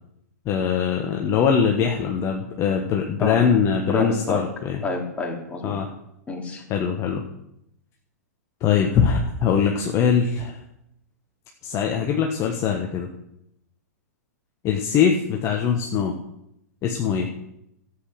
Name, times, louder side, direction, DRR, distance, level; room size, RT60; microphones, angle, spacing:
voice 1, 0.4-4.8 5.6-5.9 6.7-7.2 8.6-10.6 11.6-13.1 14.6-16.2 16.8-17.3, left 7 dB, 35° left, 2 dB, 1.4 m, -22 dB
voice 2, 3.9-4.4 4.8-5.8 6.3-6.6, left 2 dB, 15° left, 0 dB, 3.0 m, -28 dB
13.0 x 8.1 x 6.5 m, 0.82 s
figure-of-eight pair, 110°, 9 cm